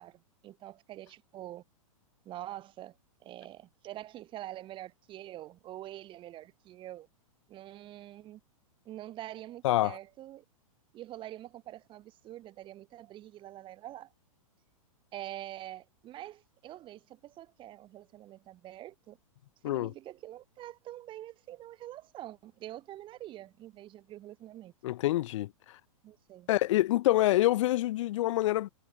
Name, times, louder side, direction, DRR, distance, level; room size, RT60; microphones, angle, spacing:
voice 1, 0.0-1.6 2.3-3.0 3.2-7.1 7.5-8.4 8.9-10.4 10.9-14.1 15.1-19.2 19.7-24.7 26.0-26.5, right 14 dB, 25° right, 1.8 m, -45 dB
voice 2, 24.8-25.5 26.5-28.7, left 15 dB, 60° left, 0.7 m, -26 dB
hypercardioid pair, 125°, 18 cm